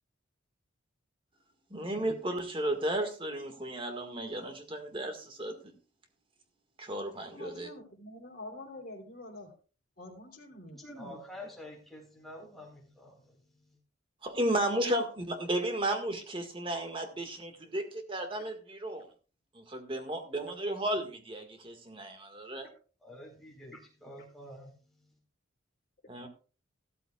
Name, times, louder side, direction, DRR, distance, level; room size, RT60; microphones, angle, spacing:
voice 1, 1.7-5.7 6.8-7.7 14.2-19.1 19.5-22.7 26.1-26.3, right 1 dB, 25° right, 5 dB, 1.8 m, -34 dB
voice 2, 7.3-9.5 10.0-10.8, left 2 dB, 45° left, -2 dB, 3.2 m, -46 dB
voice 3, 10.7-13.8 23.0-25.2, left 1 dB, ahead, -2 dB, 4.1 m, -48 dB
14.5 x 13.0 x 2.4 m, 0.37 s
head